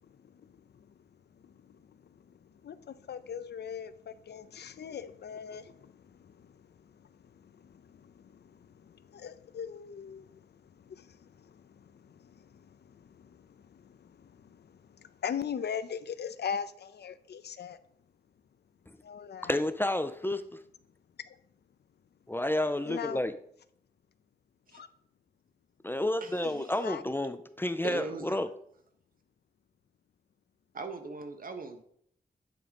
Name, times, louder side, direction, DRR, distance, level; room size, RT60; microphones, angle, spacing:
voice 1, 0.1-0.9 1.4-17.8 19.0-19.6 22.8-23.2 24.7-24.9 26.4-27.0, left 7 dB, 90° left, 13 dB, 0.5 m, -41 dB
voice 2, 19.4-20.4 22.3-23.3 25.8-28.5, left 1 dB, 15° left, 10 dB, 0.4 m, -30 dB
voice 3, 27.8-28.4 30.7-31.8, right 4 dB, 60° right, 6 dB, 1.1 m, -39 dB
9.3 x 3.7 x 5.2 m, 0.66 s
wide cardioid pair, 120°, 17 cm